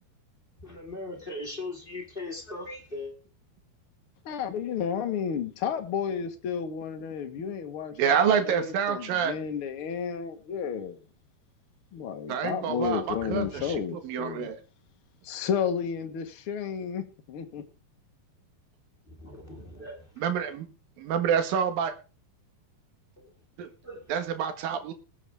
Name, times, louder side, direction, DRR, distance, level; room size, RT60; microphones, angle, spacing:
voice 1, 0.6-3.1 12.8-13.8 19.1-20.6 23.2-23.3 23.8-24.1, left 2 dB, 15° left, 2 dB, 2.0 m, -40 dB
voice 2, 4.2-11.0 11.9-14.5 15.2-17.6, left 7 dB, 60° left, 6 dB, 1.4 m, -32 dB
voice 3, 8.0-9.3 12.3-13.7 14.0-14.6 20.2-20.7 21.0-21.9 23.6-23.7 24.1-24.9, right 7 dB, 65° right, 8 dB, 3.2 m, -27 dB
20.5 x 8.1 x 3.5 m, 0.33 s
omnidirectional pair, 4.5 m